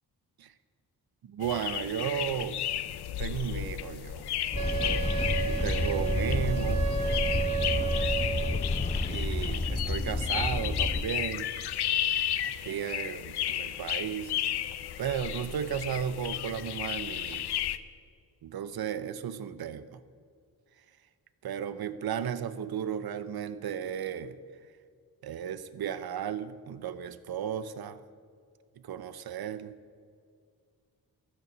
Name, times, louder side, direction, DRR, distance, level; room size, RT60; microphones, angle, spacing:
voice 1, 1.2-2.6 3.2-4.3 5.4-6.9 8.6-8.7 9.1-11.5 12.4-14.3 15.0-17.4 18.4-20.0 21.4-24.4 25.2-28.0 28.8-29.8, right 8 dB, 70° right, 13 dB, 0.8 m, -34 dB
sound 1, 1.4-17.8, left 11 dB, 85° left, 0.7 m, -34 dB
sound 2, 4.5-11.0, left 2 dB, 15° left, 0.8 m, -30 dB
Wind instrument woodwind instrument, 4.5-8.7, right 9 dB, 45° right, 2.0 m, -33 dB
15.0 x 11.0 x 6.2 m, 2.2 s
cardioid pair, 70°, 38 cm